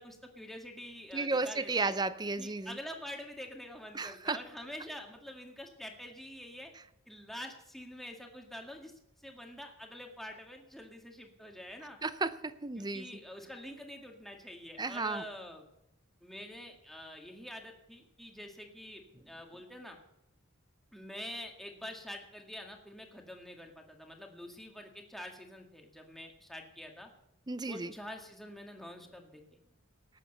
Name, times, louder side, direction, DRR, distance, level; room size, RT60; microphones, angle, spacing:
voice 1, 0.0-2.0 2.4-6.7 7.1-8.9 9.2-12.0 12.8-15.7 16.2-20.0 20.9-27.1 27.7-29.4, left 1 dB, ahead, 1 dB, 2.0 m, -46 dB
voice 2, 1.1-2.8 3.9-4.4 12.0-13.1 14.8-15.2 27.5-27.9, right 3 dB, 20° right, 14 dB, 0.6 m, -33 dB
18.5 x 8.2 x 6.7 m, 0.82 s
head